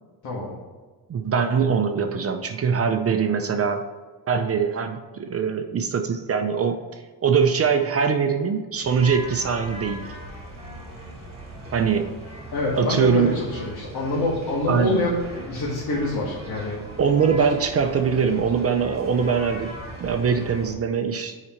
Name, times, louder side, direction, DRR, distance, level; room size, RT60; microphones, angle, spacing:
voice 1, 0.2-0.6 12.5-16.8, left 2 dB, 70° left, -5 dB, 1.9 m, -26 dB
voice 2, 1.1-3.8 4.3-10.1 11.7-12.1 12.8-13.4 14.7-15.0 17.0-19.7 20.0-21.3, right 6 dB, 35° right, 6 dB, 0.6 m, -22 dB
sound 1, 8.8-20.7, right 1 dB, 15° right, 1.9 m, -39 dB
7.0 x 5.0 x 4.5 m, 1.4 s
cardioid pair, 115°, 40 cm